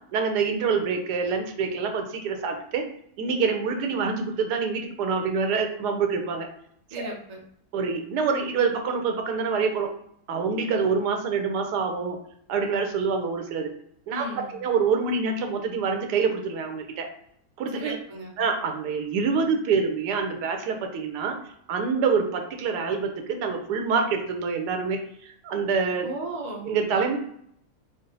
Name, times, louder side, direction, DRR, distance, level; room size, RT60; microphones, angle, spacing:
voice 1, 0.1-2.9 3.2-6.5 7.0-7.1 7.7-9.9 10.3-12.2 12.5-13.7 14.1-14.3 14.5-17.1 17.6-18.0 18.4-21.4 21.7-26.1 26.7-27.2, right 5 dB, 85° right, 5 dB, 1.2 m, -26 dB
voice 2, 6.9-7.4 14.1-14.5 17.7-18.3 26.0-26.7, right 1 dB, 65° right, -1 dB, 0.4 m, -35 dB
3.8 x 2.0 x 3.9 m, 0.70 s
omnidirectional pair, 1.7 m